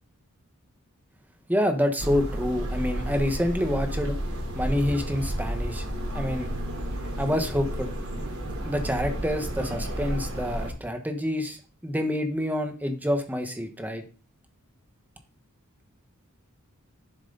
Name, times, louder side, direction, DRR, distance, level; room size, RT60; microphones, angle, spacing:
voice 1, 1.5-4.2 4.5-5.9 6.1-6.5 7.2-7.9 8.6-14.0, equal, 10° right, 6 dB, 1.3 m, -27 dB
sound 1, 2.0-10.7, right 1 dB, 80° right, 3.3 m, -31 dB
11.0 x 7.1 x 4.0 m, 0.35 s
head